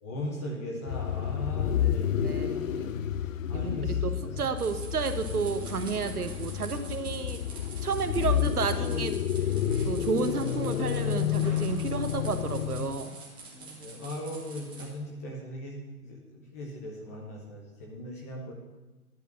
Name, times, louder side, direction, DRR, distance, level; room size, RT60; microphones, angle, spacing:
voice 1, 0.0-2.8 3.5-4.3 13.8-18.5, equal, 10° left, -1 dB, 0.5 m, -39 dB
sound 1, 0.9-13.0, left 10 dB, 60° left, 0.6 m, -30 dB
voice 2, 2.2-3.1 3.5-7.4 7.8-9.2 9.8-13.2, right 5 dB, 80° right, 9 dB, 1.1 m, -32 dB
sound 2, 4.5-14.9, right 3 dB, 10° right, 1.3 m, -46 dB
11.0 x 5.0 x 7.4 m, 1.1 s
figure-of-eight pair, 130°, 45 cm